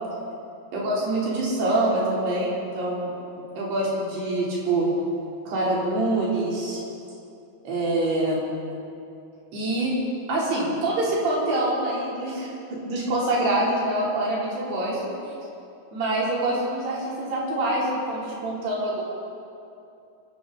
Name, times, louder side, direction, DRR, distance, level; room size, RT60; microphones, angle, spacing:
voice 1, 0.7-3.1 3.6-4.9 5.5-6.8 7.7-8.4 9.5-9.9 10.3-15.0 15.9-19.0, right 2 dB, 90° right, -5 dB, 5.6 m, -25 dB
23.5 x 14.0 x 4.0 m, 2.6 s
omnidirectional pair, 4.5 m